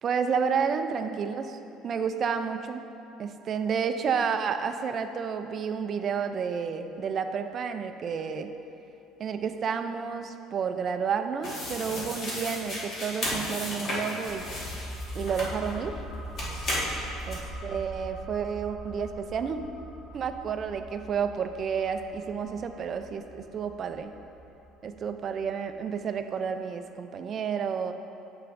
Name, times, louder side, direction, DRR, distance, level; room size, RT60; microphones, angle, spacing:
voice 1, 0.0-1.6 1.8-2.9 3.2-8.5 9.2-14.5 15.1-16.0 17.3-19.6 20.1-24.1 24.8-27.9, right 6 dB, 35° right, 7 dB, 0.4 m, -30 dB
sound 1, 11.4-15.8 16.4-17.4, left 1 dB, 40° left, 1.5 m, -34 dB
sound 2, 14.3-25.6 25.9-26.0, right 1 dB, 15° left, 1.5 m, -42 dB
9.5 x 6.9 x 2.5 m, 2.8 s
cardioid pair, 150°, 0 cm